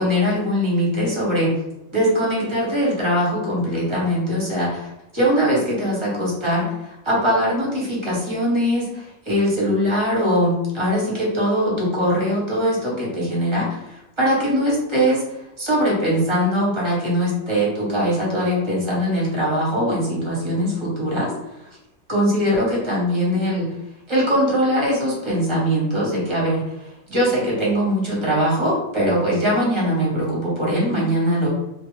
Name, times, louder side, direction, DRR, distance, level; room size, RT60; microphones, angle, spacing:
voice 1, 0.0-1.5 1.9-21.3 21.6-21.8 22.1-23.7 24.1-31.5, equal, 25° right, -5 dB, 0.6 m, -21 dB
2.5 x 2.2 x 3.0 m, 0.94 s
omnidirectional pair, 1.7 m